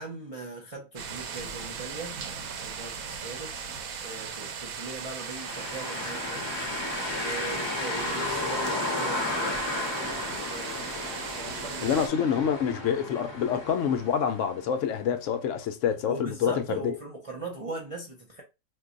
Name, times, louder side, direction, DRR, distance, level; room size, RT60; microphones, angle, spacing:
voice 1, 0.0-2.2 2.6-3.5 4.0-6.5 7.1-11.0 11.3-12.0 16.1-18.4, right 3 dB, 40° right, 0.5 m, -40 dB
sound 1, 1.0-12.1, right 6 dB, 85° right, 1.1 m, -38 dB
sound 2, 5.2-15.0, left 2 dB, 25° left, 0.8 m, -33 dB
voice 2, 11.8-16.9, left 8 dB, 70° left, 0.9 m, -27 dB
2.6 x 2.2 x 3.7 m
omnidirectional pair, 1.4 m